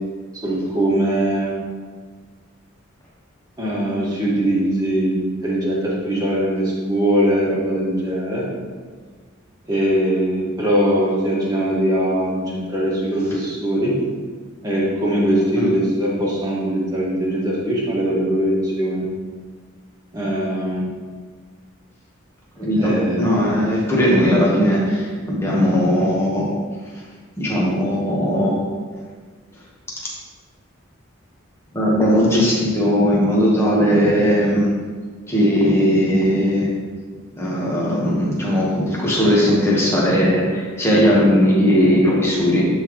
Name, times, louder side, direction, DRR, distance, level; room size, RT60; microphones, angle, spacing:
voice 1, 0.4-1.6 3.6-8.4 9.7-13.9 14.6-19.1 20.1-20.8 22.8-23.2, right 1 dB, 20° right, -7 dB, 1.8 m, -21 dB
voice 2, 22.6-26.5 27.4-28.6 31.7-34.7 35.3-36.7 37.4-42.7, equal, 15° left, -5 dB, 1.5 m, -18 dB
11.0 x 3.9 x 3.2 m, 1.5 s
head